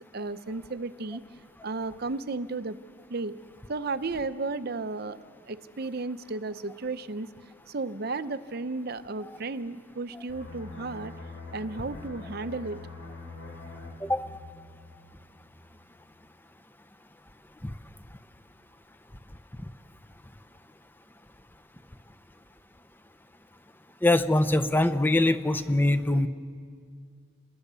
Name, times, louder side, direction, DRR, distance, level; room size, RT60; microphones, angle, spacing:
voice 1, 0.1-1.2 1.6-2.8 3.1-3.4 3.7-5.2 5.5-7.3 7.7-11.1 11.5-12.9, right 3 dB, 55° right, 13 dB, 0.7 m, -33 dB
sound 1, 10.3-15.7 16.0-16.2, left 3 dB, 80° left, 5.4 m, -44 dB
voice 2, 24.0-26.3, left 1 dB, 10° left, 11 dB, 0.7 m, -23 dB
28.0 x 21.0 x 6.8 m, 2.2 s
head